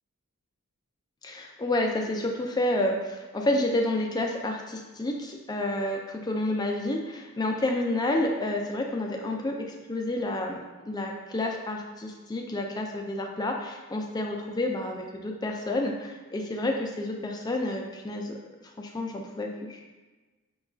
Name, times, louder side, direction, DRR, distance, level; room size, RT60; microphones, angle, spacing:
voice 1, 1.2-18.4 18.8-19.8, left 1 dB, 20° left, 1 dB, 0.3 m, -29 dB
4.9 x 2.3 x 2.4 m, 1.2 s
head